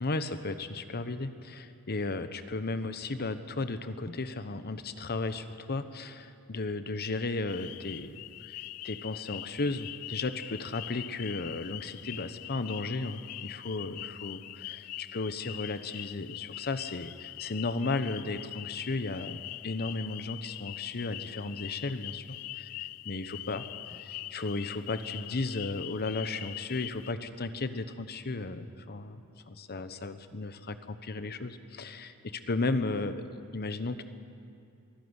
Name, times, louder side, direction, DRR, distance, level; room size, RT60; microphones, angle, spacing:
voice 1, 0.0-8.6 8.8-22.7 23.1-33.2 33.5-34.0, left 3 dB, 45° left, 11 dB, 1.0 m, -35 dB
sound 1, 7.5-27.1, left 17 dB, 85° left, 0.4 m, -43 dB
23.5 x 12.0 x 9.7 m, 2.6 s
head